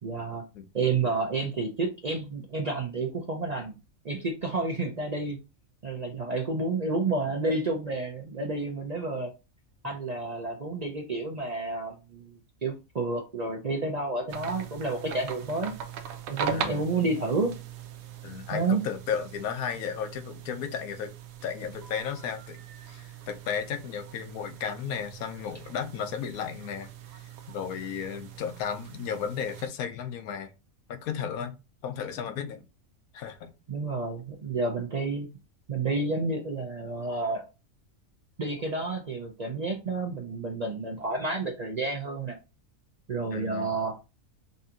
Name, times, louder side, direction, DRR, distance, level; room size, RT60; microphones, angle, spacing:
voice 1, 0.0-0.4 0.7-3.8 4.0-5.4 5.8-9.3 9.8-15.7 16.3-17.5 18.5-18.8 33.7-35.3 35.7-37.4 38.4-42.4 43.1-44.0, right 3 dB, 50° right, 0.5 m, -30 dB
sound 1, 14.3-29.7, right 8 dB, 80° right, 1.0 m, -40 dB
voice 2, 16.5-16.8 18.2-21.1 21.4-22.6 22.9-26.9 27.1-30.5 30.9-31.6 31.8-32.7 33.1-33.5 43.3-43.8, left 7 dB, 85° left, 1.1 m, -34 dB
5.2 x 2.8 x 2.5 m
omnidirectional pair, 1.5 m